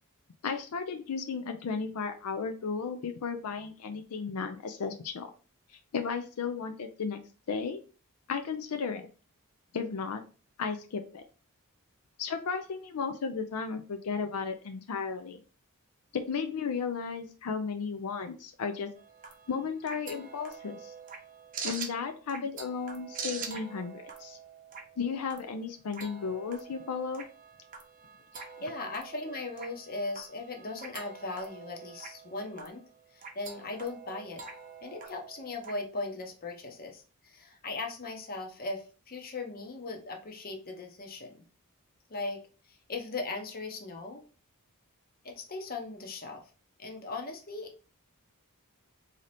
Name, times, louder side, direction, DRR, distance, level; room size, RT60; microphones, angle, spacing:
voice 1, 0.4-5.3 5.9-7.2 7.5-7.8 8.3-9.1 9.7-10.2 10.6-11.2 12.2-15.4 16.1-18.9 19.5-20.9 21.6-24.4 25.0-27.3, left 5 dB, 85° left, 7 dB, 0.5 m, -34 dB
sound 1, 19.0-35.7, right 5 dB, 40° right, 0.7 m, -45 dB
voice 2, 28.6-34.4 34.8-41.4 42.1-42.4 42.7-44.2 45.2-46.5 46.8-47.7, left 3 dB, 45° left, 3 dB, 0.8 m, -38 dB
3.8 x 2.8 x 3.3 m, 0.37 s
head